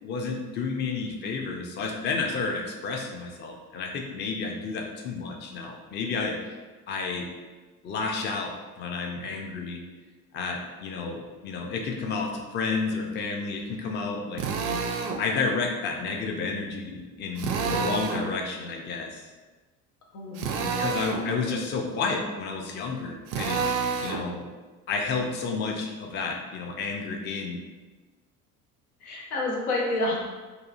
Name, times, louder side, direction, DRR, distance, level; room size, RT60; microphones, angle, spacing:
voice 1, 0.0-6.5 6.9-7.3 7.8-9.8 10.3-14.4 15.2-19.3 20.7-23.6 24.0-24.5 24.9-27.6, left 4 dB, 25° left, 2 dB, 0.4 m, -31 dB
Drill, 14.4-15.2 17.4-18.3 20.4-21.2 23.3-24.2, right 5 dB, 60° right, 0.5 m, -28 dB
voice 2, 20.1-20.7 29.0-30.2, left 2 dB, 85° left, -2 dB, 0.7 m, -29 dB
2.7 x 2.3 x 2.4 m, 1.3 s
hypercardioid pair, 60°, 43 cm